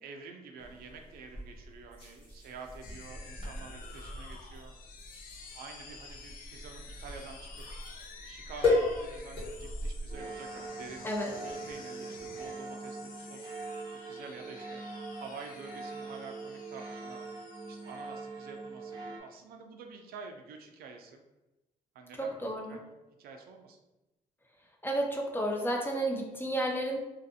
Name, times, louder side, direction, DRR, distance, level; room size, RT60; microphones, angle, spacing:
voice 1, 0.0-4.7 5.5-7.7 8.2-11.1 11.4-13.5 14.1-14.8 15.2-17.2 17.7-21.2 21.9-23.8, right 4 dB, 85° right, 4 dB, 0.4 m, -48 dB
sound 1, 0.6-10.4, left 2 dB, 35° left, 1.0 m, -36 dB
sound 2, 2.8-18.6, left 5 dB, 70° left, 0.4 m, -51 dB
sound 3, 10.1-19.2, right 3 dB, 30° right, 0.6 m, -43 dB
voice 2, 22.2-22.8 24.8-27.0, right 1 dB, 15° left, 0 dB, 0.6 m, -32 dB
2.5 x 2.4 x 2.6 m, 1.0 s
cardioid pair, 85°, 15 cm